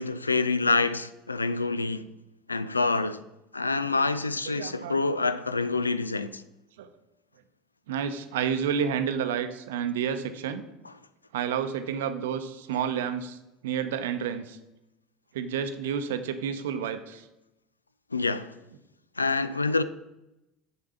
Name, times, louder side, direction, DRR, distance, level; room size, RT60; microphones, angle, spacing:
voice 1, 0.0-2.1 2.5-3.2 3.5-6.4 18.1-18.6 19.2-19.8, left 3 dB, 85° left, 0.3 m, -27 dB
voice 2, 4.5-5.0 5.5-5.6 6.8-6.9 7.9-10.6 11.3-13.4 13.6-14.6 15.3-17.3, right 8 dB, 65° right, 0.6 m, -30 dB
6.8 x 4.5 x 6.5 m
figure-of-eight pair, 70°, 0 cm